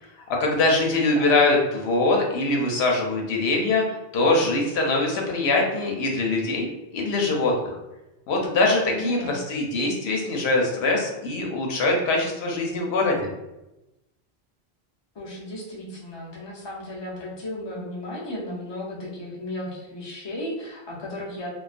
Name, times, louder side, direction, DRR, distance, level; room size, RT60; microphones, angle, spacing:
voice 1, 0.3-3.8 4.1-7.7 8.3-13.3, left 2 dB, 85° left, 0 dB, 0.8 m, -23 dB
voice 2, 1.0-1.4 8.9-9.4 15.1-21.5, left 1 dB, 30° left, -5 dB, 0.6 m, -35 dB
2.3 x 2.2 x 2.4 m, 0.97 s
omnidirectional pair, 1.0 m